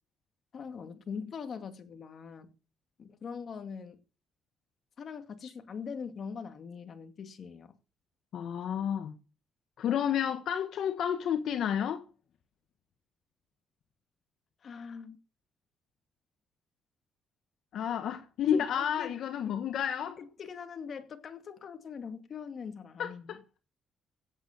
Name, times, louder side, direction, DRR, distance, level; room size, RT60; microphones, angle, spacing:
voice 1, 0.5-2.5 3.0-4.0 5.0-7.8 14.6-15.2 18.5-19.2 20.0-23.4, left 6 dB, 50° left, 2.4 m, -42 dB
voice 2, 8.3-9.1 9.8-12.0 17.7-20.1 23.0-23.4, left 9 dB, 70° left, 1.6 m, -31 dB
16.0 x 8.5 x 6.8 m
cardioid pair, 90°, 0 cm